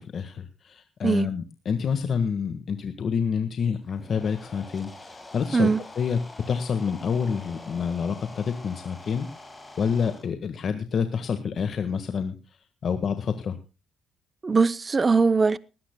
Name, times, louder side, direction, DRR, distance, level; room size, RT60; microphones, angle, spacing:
voice 1, 0.0-5.7 6.0-6.2 6.5-9.3 9.8-12.3 12.8-13.6, left 6 dB, 55° left, 1.6 m, -28 dB
sound 1, 3.8-10.2, left 2 dB, 20° left, 6.2 m, -45 dB
voice 2, 14.4-15.6, right 4 dB, 30° right, 0.7 m, -21 dB
19.0 x 17.5 x 2.3 m
cardioid pair, 90°, 0 cm